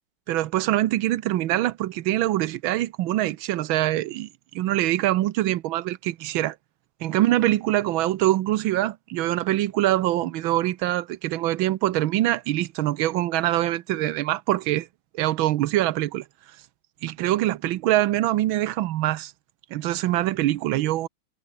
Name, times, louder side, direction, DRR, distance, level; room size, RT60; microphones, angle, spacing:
voice 1, 0.3-4.3 4.5-6.5 7.0-14.9 15.1-16.2 17.0-19.3 19.7-21.1, right 14 dB, 85° right, 1.5 m, -24 dB
omnidirectional pair, 2.2 m